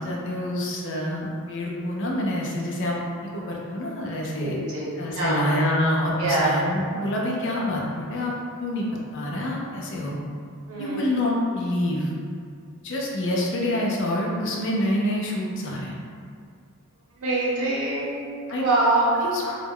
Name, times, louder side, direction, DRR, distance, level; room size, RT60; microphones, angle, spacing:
voice 1, 0.0-3.0 3.2-4.6 5.0-8.3 8.6-8.9 9.1-10.1 10.8-12.1 12.8-15.9 18.5-18.6 19.2-19.4, left 1 dB, 55° left, -3 dB, 0.5 m, -26 dB
voice 2, 4.4-4.9 5.1-5.4 6.2-6.5 10.7-11.0 17.2-19.6, right 2 dB, 80° right, -6 dB, 0.8 m, -24 dB
2.3 x 2.1 x 3.5 m, 2.3 s
head